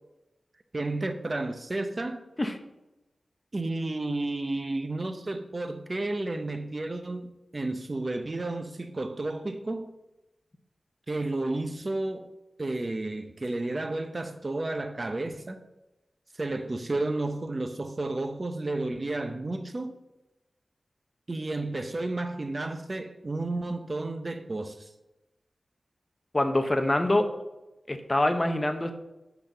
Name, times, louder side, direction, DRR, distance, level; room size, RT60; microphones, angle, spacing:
voice 1, 0.7-2.2 3.5-9.9 11.1-12.3 12.6-15.6 16.4-20.0 21.3-24.9, right 2 dB, 35° right, 0.7 m, -32 dB
voice 2, 26.3-27.3 27.9-28.9, left 1 dB, 25° left, 1.0 m, -25 dB
11.0 x 4.2 x 6.8 m
wide cardioid pair, 95°, 0 cm